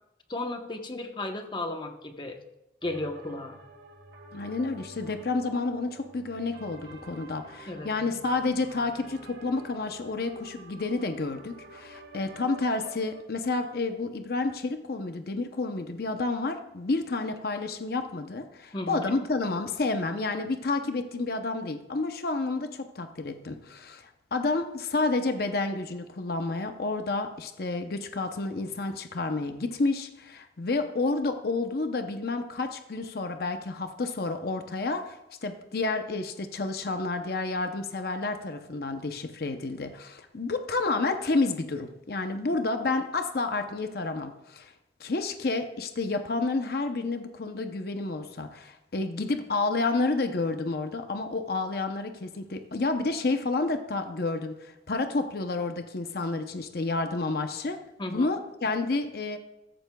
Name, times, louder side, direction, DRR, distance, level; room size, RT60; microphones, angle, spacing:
voice 1, 0.3-2.4 2.8-3.6 7.7-7.9 18.7-19.0 58.0-58.3, left 2 dB, 25° left, 5 dB, 0.9 m, -34 dB
sound 1, 2.8-13.2, right 2 dB, 85° right, 1.9 m, -49 dB
voice 2, 4.3-44.7 45.0-57.8 58.1-59.4, left 3 dB, 60° left, 7 dB, 0.7 m, -30 dB
14.5 x 14.0 x 2.3 m, 0.93 s
head